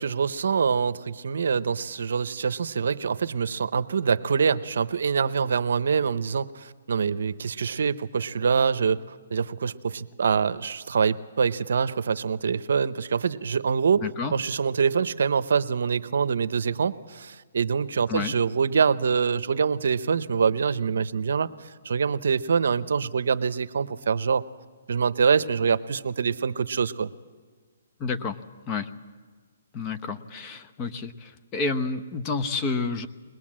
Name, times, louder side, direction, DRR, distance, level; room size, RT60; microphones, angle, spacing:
voice 1, 0.0-14.1 14.3-24.5 24.9-27.1, right 6 dB, 75° right, 14 dB, 0.8 m, -25 dB
voice 2, 14.0-14.3 18.1-18.3 28.0-28.4 28.7-28.9 29.7-33.1, left 4 dB, 25° left, 10 dB, 0.9 m, -29 dB
22.0 x 20.0 x 7.5 m, 1.5 s
hypercardioid pair, 155°, 0 cm